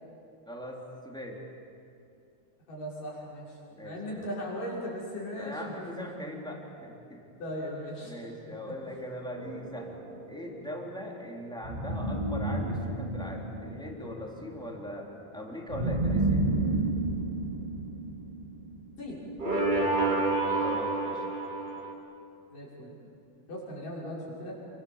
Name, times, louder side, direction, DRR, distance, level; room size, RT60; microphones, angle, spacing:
voice 1, 0.4-1.4 3.7-4.3 5.3-7.2 8.0-10.0 10.3-16.4 20.5-21.3, equal, ahead, -1 dB, 3.1 m, -40 dB
voice 2, 2.7-3.5 3.8-6.1 7.4-8.1 19.0-19.2 22.5-23.0 23.5-24.5, equal, 65° left, -5 dB, 7.9 m, -38 dB
sound 1, 9.4-10.3 11.6-14.2 15.7-18.8 19.4-21.9, right 2 dB, 15° right, 2.5 m, -30 dB
28.0 x 25.0 x 7.4 m, 2.6 s
omnidirectional pair, 4.1 m